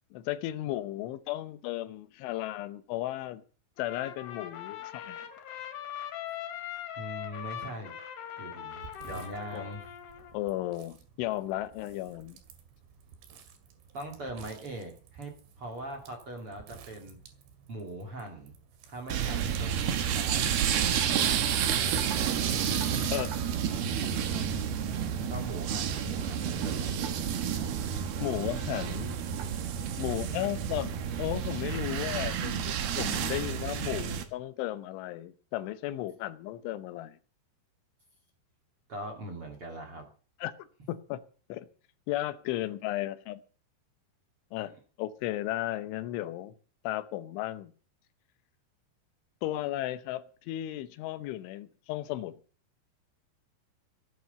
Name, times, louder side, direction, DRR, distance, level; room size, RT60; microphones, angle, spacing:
voice 1, 0.1-3.4 3.8-5.3 9.5-9.7 10.3-12.4 23.1-23.3 24.2-24.4 28.2-29.1 30.0-37.2 40.4-41.2 41.5-41.7 42.1-43.4 44.5-44.7 45.0-46.5 46.8-47.7 49.4-52.4, left 15 dB, 85° left, 3.3 m, -35 dB
Trumpet, 3.8-10.4, left 10 dB, 65° left, 4.1 m, -41 dB
voice 2, 7.0-8.0 8.4-9.8 10.2-10.3 13.9-15.3 15.6-17.2 17.7-18.5 18.9-20.5 25.3-27.3 38.9-40.0, right 1 dB, 40° right, 2.3 m, -41 dB
sound 1, 8.7-24.1, right 8 dB, 80° right, 4.7 m, -47 dB
sound 2, 19.1-34.2, right 8 dB, 65° right, 3.2 m, -30 dB
16.5 x 9.5 x 6.9 m
omnidirectional pair, 5.4 m